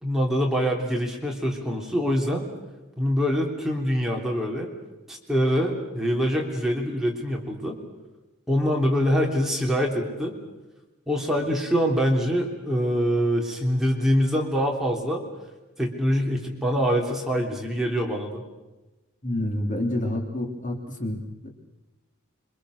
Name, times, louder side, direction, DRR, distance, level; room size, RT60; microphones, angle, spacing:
voice 1, 0.0-2.4 3.0-4.7 5.1-7.8 8.5-10.3 11.1-15.2 15.8-18.4, equal, ahead, -1 dB, 3.4 m, -24 dB
voice 2, 19.2-21.5, left 1 dB, 40° left, 2 dB, 3.3 m, -28 dB
27.5 x 25.0 x 6.6 m, 1.1 s
head